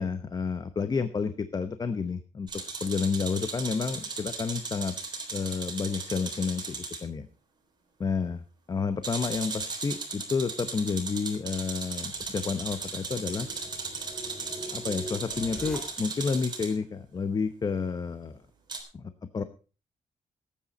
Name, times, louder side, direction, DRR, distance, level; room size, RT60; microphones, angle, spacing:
voice 1, 0.0-2.5 2.8-4.9 5.3-7.3 8.0-13.5 14.7-18.4 18.9-19.4, left 5 dB, 30° left, 10 dB, 0.9 m, -30 dB
sound 1, 2.5-7.0 9.0-16.7 18.7-18.8, right 4 dB, 35° right, 3.7 m, -37 dB
sound 2, 12.0-16.4, equal, 5° left, 4.5 m, -44 dB
18.5 x 8.8 x 4.1 m, 0.35 s
wide cardioid pair, 145°, 13 cm